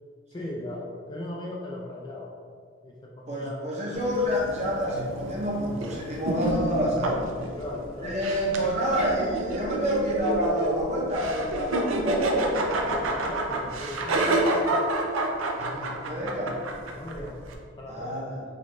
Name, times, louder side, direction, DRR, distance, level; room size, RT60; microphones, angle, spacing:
voice 1, 0.3-2.4 2.8-3.8 6.4-6.6 7.6-8.3 12.9-14.9 17.0-18.4, left 1 dB, 20° left, -2 dB, 0.3 m, -38 dB
voice 2, 3.3-7.3 8.0-12.5 15.6-16.6 17.9-18.4, equal, 35° right, -3 dB, 0.7 m, -28 dB
sound 1, 3.9-17.5, right 2 dB, 85° right, 0.5 m, -29 dB
4.1 x 2.4 x 3.0 m, 2.1 s
head